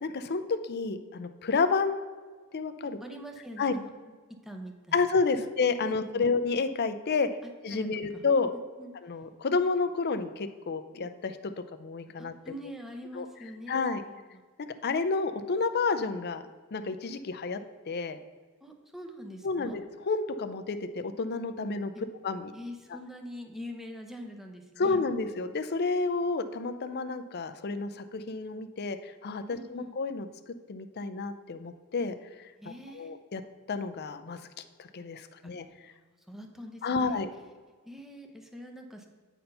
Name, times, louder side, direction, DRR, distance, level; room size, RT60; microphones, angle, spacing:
voice 1, 0.0-2.0 2.5-3.0 3.6-3.7 4.9-7.3 7.6-8.5 9.0-11.5 11.8-12.3 13.1-13.3 13.7-14.0 14.8-16.4 16.7-17.6 17.9-18.2 19.4-21.9 22.2-22.5 24.8-32.5 32.9-33.4 33.7-34.4 34.8-35.9 36.8-37.3, left 4 dB, 50° left, 9 dB, 0.5 m, -30 dB
voice 2, 3.0-3.9 4.4-5.0 5.4-5.5 5.8-6.3 7.4-7.9 8.1-8.3 8.5-8.9 12.2-14.4 18.6-19.8 22.5-25.0 29.5-30.0 32.6-33.1 35.4-37.3 37.8-39.1, equal, ahead, 3 dB, 0.8 m, -44 dB
9.1 x 4.4 x 5.4 m, 1.4 s
head